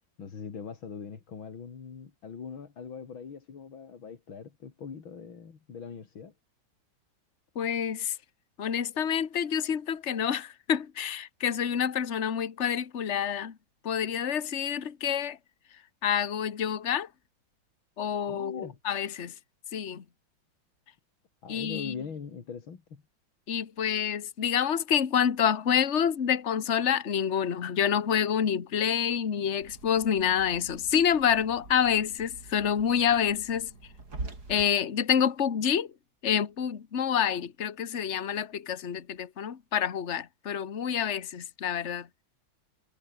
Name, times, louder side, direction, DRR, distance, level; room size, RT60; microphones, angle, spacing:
voice 1, 0.2-6.3 18.3-18.8 21.4-23.0, left 6 dB, 80° left, 3.3 m, -41 dB
voice 2, 7.5-8.1 8.6-13.5 13.8-15.4 16.0-17.1 18.0-19.3 19.7-20.0 21.5-21.9 23.5-33.7 34.5-35.9 36.2-42.1, left 8 dB, 40° left, 1.6 m, -27 dB
sound 1, 29.6-34.6, right 3 dB, 50° right, 5.7 m, -44 dB
omnidirectional pair, 2.2 m